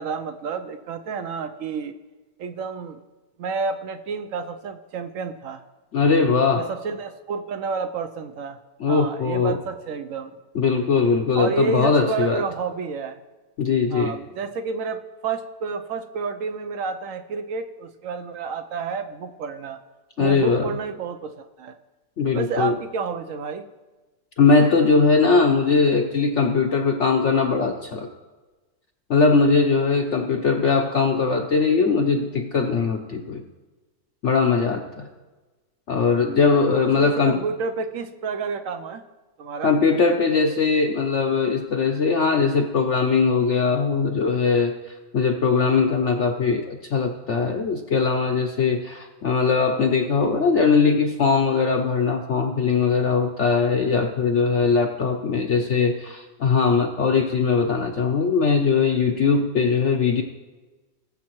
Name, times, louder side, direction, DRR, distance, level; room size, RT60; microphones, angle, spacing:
voice 1, 0.0-1.9 2.4-3.0 3.4-5.6 6.6-8.6 8.9-10.3 11.3-13.2 13.9-19.8 20.2-21.7 22.3-23.6 37.0-39.0 39.4-39.8, right 5 dB, 70° right, 9 dB, 0.8 m, -30 dB
voice 2, 5.9-6.6 8.8-9.6 10.5-12.4 13.6-14.2 20.2-20.7 22.2-22.8 24.4-28.1 29.1-33.4 34.2-35.1 35.9-37.4 39.6-44.7 45.1-60.2, left 4 dB, 60° left, 3 dB, 0.8 m, -20 dB
19.0 x 7.3 x 3.0 m, 1.2 s
omnidirectional pair, 1.9 m